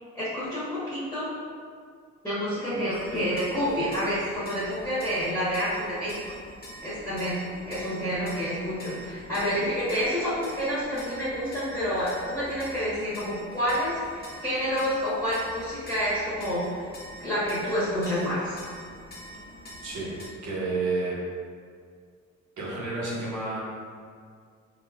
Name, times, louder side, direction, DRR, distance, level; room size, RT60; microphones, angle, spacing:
voice 1, 0.1-1.3 2.2-6.2 6.8-7.4 7.7-16.7 17.2-18.5, equal, 5° left, -12 dB, 1.5 m, -28 dB
sound 1, 2.9-20.3, equal, 30° left, 1.0 m, -44 dB
voice 2, 19.8-20.1 20.4-21.2 22.6-23.6, right 3 dB, 75° right, -5 dB, 1.2 m, -30 dB
4.3 x 3.0 x 2.5 m, 2.1 s
cardioid pair, 90°, 30 cm